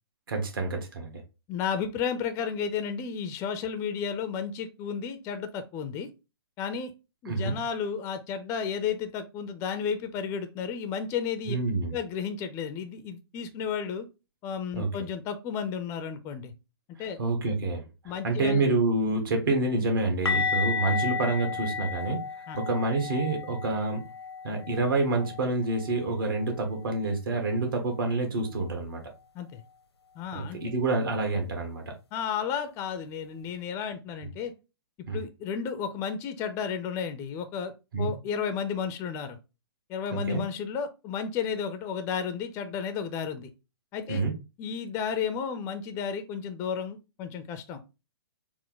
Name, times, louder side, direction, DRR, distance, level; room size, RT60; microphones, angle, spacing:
voice 1, 0.3-1.2 7.2-7.5 11.5-11.9 14.8-14.9 17.2-17.8 18.2-22.2 22.6-24.0 24.4-29.0 30.3-31.8 34.2-34.3 35.1-35.2 37.9-38.1 40.1-40.4 44.1-44.3, right 2 dB, 55° right, 1.4 m, -27 dB
voice 2, 1.5-6.1 6.6-6.9 7.2-11.6 11.9-14.1 14.4-16.5 17.0-17.2 18.0-18.7 22.5-22.6 29.3-29.6 30.2-30.6 32.1-34.5 35.1-39.4 39.9-43.5 43.9-44.2 44.6-48.0, left 7 dB, 20° left, 0.4 m, -33 dB
sound 1, 20.3-26.0 26.3-26.5 26.9-27.0 30.3-30.4, left 6 dB, 85° left, 0.7 m, -33 dB
4.3 x 2.1 x 3.8 m
figure-of-eight pair, 120°, 13 cm